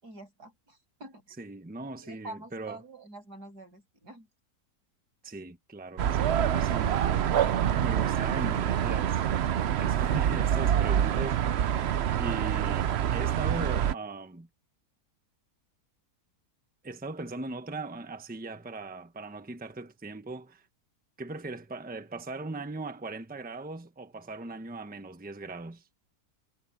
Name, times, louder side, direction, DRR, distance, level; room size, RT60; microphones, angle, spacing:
voice 1, 0.0-1.4 2.0-4.3, right 2 dB, 90° right, 8.0 m, -46 dB
voice 2, 1.4-2.8 5.2-11.4 11.9-14.5 16.8-20.7 21.2-25.8, right 2 dB, 5° right, 1.0 m, -39 dB
sound 1, 6.0-13.9, right 10 dB, 60° right, 0.7 m, -26 dB
omnidirectional pair, 1.7 m